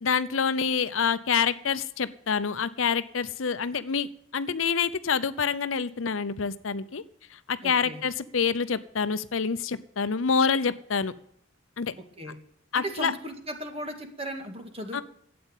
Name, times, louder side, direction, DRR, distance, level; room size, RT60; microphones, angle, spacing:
voice 1, 0.0-7.0 7.3-11.1 11.8-11.9 12.7-13.1 14.9-15.0, left 6 dB, 80° left, 14 dB, 0.7 m, -27 dB
voice 2, 7.6-8.0 12.2-12.4 12.7-15.0, right 1 dB, 30° right, 4 dB, 2.1 m, -36 dB
12.0 x 8.7 x 7.3 m, 0.68 s
head